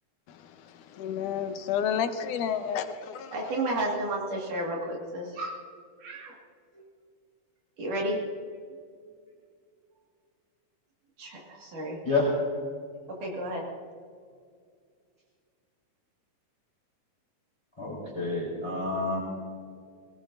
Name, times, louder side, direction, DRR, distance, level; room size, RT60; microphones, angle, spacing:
voice 1, 0.3-3.6, left 8 dB, 75° left, 8 dB, 2.3 m, -31 dB
voice 2, 3.3-5.6 6.0-6.3 7.8-8.2 11.2-12.0 13.2-13.6, right 1 dB, 70° right, -2 dB, 3.6 m, -32 dB
voice 3, 17.8-19.2, left 3 dB, 10° left, -4 dB, 3.7 m, -28 dB
21.0 x 18.5 x 2.6 m, 2.1 s
omnidirectional pair, 3.9 m